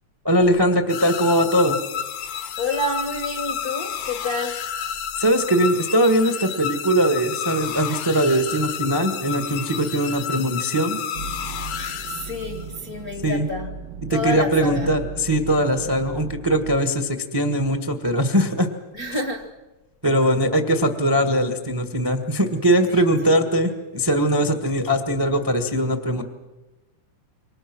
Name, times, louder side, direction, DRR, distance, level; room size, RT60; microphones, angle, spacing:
voice 1, 0.2-1.8 5.2-11.0 13.2-13.5 14.1-18.7 20.0-26.2, right 1 dB, 20° right, 0.6 m, -21 dB
sound 1, 0.9-12.8, left 8 dB, 75° left, 2.5 m, -31 dB
voice 2, 2.6-4.8 11.7-13.7 14.1-15.1 18.9-19.5 22.9-23.4, left 2 dB, 50° left, 1.1 m, -29 dB
sound 2, 11.1-16.8, right 4 dB, 65° right, 1.3 m, -37 dB
27.5 x 24.0 x 6.2 m
omnidirectional pair, 3.6 m